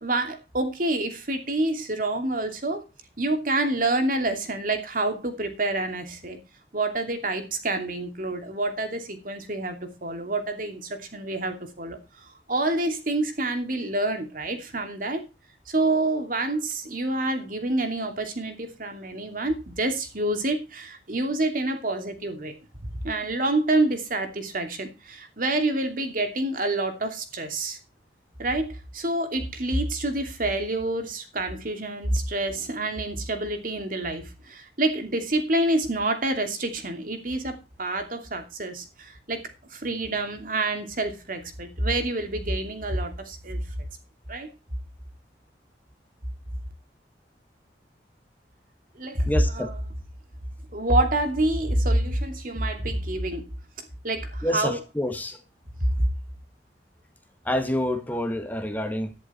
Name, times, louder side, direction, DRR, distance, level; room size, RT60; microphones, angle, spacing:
voice 1, 0.0-2.8 3.2-6.4 6.7-15.2 15.7-22.5 22.8-27.8 28.4-39.4 39.7-43.7 44.3-44.5 49.0-49.3 49.5-49.7 50.7-53.5 54.0-54.8 56.0-56.1, right 2 dB, 50° right, 6 dB, 2.7 m, -27 dB
voice 2, 49.2-49.7 54.4-55.4 57.4-59.1, left 1 dB, 10° left, 7 dB, 1.5 m, -27 dB
11.0 x 11.0 x 4.4 m, 0.28 s
head